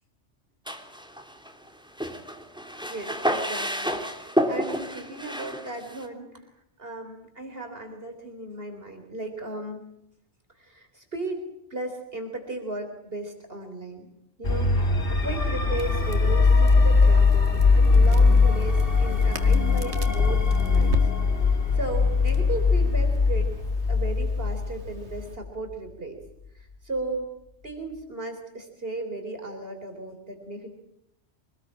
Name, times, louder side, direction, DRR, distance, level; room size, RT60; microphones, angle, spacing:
sound 1, 0.7-1.7 2.0-6.0, equal, 5° right, 3.1 m, -30 dB
voice 1, 2.9-6.5 6.8-9.8 10.5-11.4 11.7-14.1 14.4-21.1 21.4-23.5 23.9-26.2 26.5-27.3 27.6-30.7, right 2 dB, 55° right, 4 dB, 4.0 m, -36 dB
sound 2, 14.4-25.5, left 4 dB, 50° left, 2.2 m, -21 dB
Crackle, 15.8-25.4, right 2 dB, 70° right, 2.5 m, -39 dB
26.5 x 20.0 x 8.8 m, 0.78 s
omnidirectional pair, 1.2 m